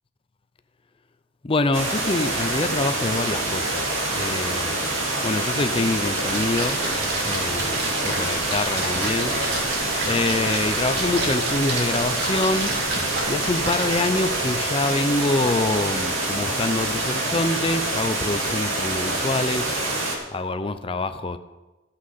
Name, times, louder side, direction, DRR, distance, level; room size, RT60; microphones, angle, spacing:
voice 1, 1.4-4.7 5.2-6.8 7.2-12.8 13.3-21.4, left 2 dB, 25° left, 10 dB, 0.5 m, -26 dB
sound 1, 1.7-20.2, right 2 dB, 90° right, 2.1 m, -26 dB
Splash splatter, 6.2-14.4, right 2 dB, 55° right, 2.3 m, -31 dB
14.0 x 6.3 x 5.7 m, 1.1 s
head